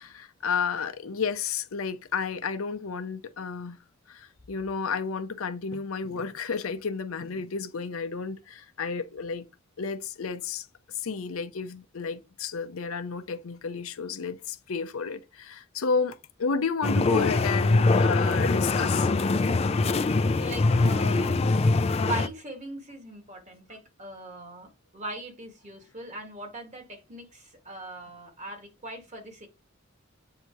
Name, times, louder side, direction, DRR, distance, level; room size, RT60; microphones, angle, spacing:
voice 1, 0.0-3.8 4.1-9.4 9.8-10.7 10.9-19.1, left 5 dB, 80° left, 0.6 m, -31 dB
sound 1, 16.8-22.3, left 3 dB, 30° left, 0.4 m, -23 dB
voice 2, 20.4-24.7 24.9-29.5, right 1 dB, 35° right, 1.9 m, -40 dB
7.9 x 2.8 x 4.6 m
head